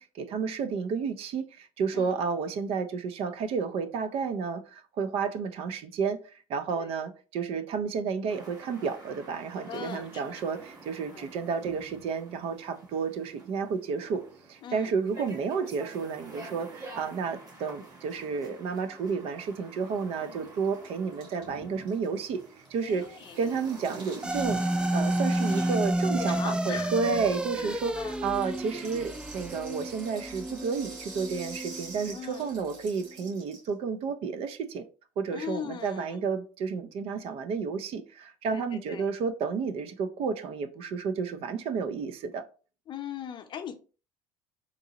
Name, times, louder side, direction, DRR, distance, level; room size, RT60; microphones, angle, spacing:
voice 1, 0.0-14.2 14.5-22.4 22.7-23.1 23.4-24.6 24.9-34.8 35.2-42.5, right 5 dB, 60° right, 0.5 m, -31 dB
sound 1, 8.3-25.8, right 2 dB, 35° right, 1.3 m, -49 dB
voice 2, 9.7-10.4 11.1-11.3 14.6-14.9 22.8-23.5 26.3-27.1 27.6-28.2 32.1-32.5 35.3-36.3 38.5-39.1 42.9-43.7, left 8 dB, 45° left, 0.7 m, -40 dB
Rattle (instrument), 19.9-20.0 20.1-20.2 20.4-27.6 27.9-33.7, right 3 dB, 85° right, 1.7 m, -48 dB
sound 2, 24.2-32.7, right 1 dB, 10° right, 0.3 m, -31 dB
3.9 x 2.7 x 2.8 m
hypercardioid pair, 80°, 11 cm